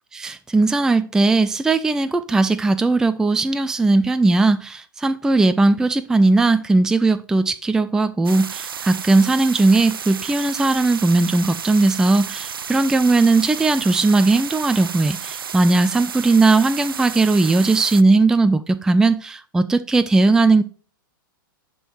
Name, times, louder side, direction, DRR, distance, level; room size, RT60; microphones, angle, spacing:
voice 1, 0.1-20.6, right 3 dB, 5° right, 0.4 m, -18 dB
sound 1, 8.2-18.0, right 7 dB, 80° right, 0.5 m, -32 dB
11.0 x 3.8 x 4.4 m
figure-of-eight pair, 105°, 12 cm